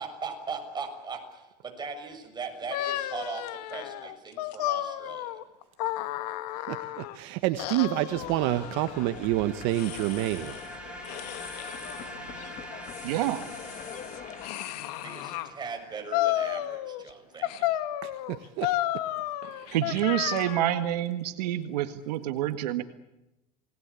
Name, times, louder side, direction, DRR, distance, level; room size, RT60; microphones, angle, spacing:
voice 1, 0.0-5.4 15.0-17.8, right 4 dB, 20° right, 4 dB, 6.7 m, -39 dB
sound 1, 2.7-7.2 7.6-9.1 9.7-10.7 11.0-12.1 12.6-15.5 16.1-17.1 17.4-20.9, left 14 dB, 75° left, 2.0 m, -33 dB
voice 2, 6.7-10.6 18.0-18.7 19.4-19.7, right 15 dB, 60° right, 9 dB, 1.5 m, -28 dB
sound 2, 8.1-14.5, left 9 dB, 40° left, 2.1 m, -45 dB
sound 3, 8.1-15.9, right 1 dB, 5° right, 7.8 m, -45 dB
voice 3, 13.0-13.5 19.7-22.8, right 13 dB, 85° right, 9 dB, 1.8 m, -28 dB
29.0 x 20.0 x 8.4 m, 0.94 s
supercardioid pair, 130°, 20 cm